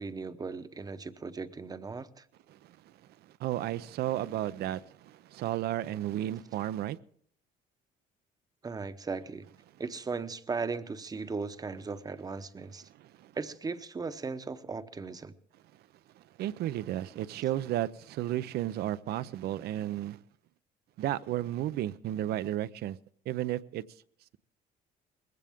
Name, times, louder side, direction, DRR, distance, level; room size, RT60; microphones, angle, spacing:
voice 1, 0.0-2.2 8.6-9.5 9.8-12.9 13.3-15.3, right 4 dB, 20° right, 0.9 m, -37 dB
voice 2, 3.2-7.0 12.9-13.3 16.2-20.2 21.0-23.0 23.3-23.8, right 13 dB, 70° right, 0.6 m, -33 dB
20.5 x 16.0 x 3.6 m
cardioid pair, 110°, 17 cm